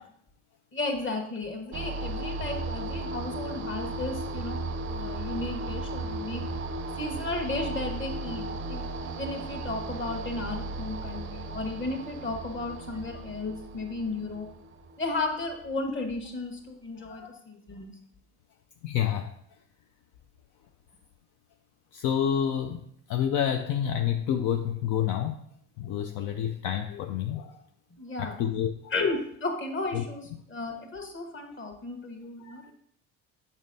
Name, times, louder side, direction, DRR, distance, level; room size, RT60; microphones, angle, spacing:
voice 1, 0.7-6.4 7.0-14.5 15.0-17.9 28.0-28.4 28.9-32.6, left 3 dB, 35° left, 3 dB, 1.3 m, -34 dB
sound 1, 1.7-15.9, right 2 dB, 35° right, 0.5 m, -35 dB
voice 2, 17.1-17.4 18.8-19.3 21.9-25.4 25.8-27.5 28.2-28.9 29.9-30.0 32.4-32.7, left 9 dB, 65° left, 5 dB, 0.5 m, -29 dB
7.1 x 5.2 x 2.7 m, 0.68 s
supercardioid pair, 100°, 34 cm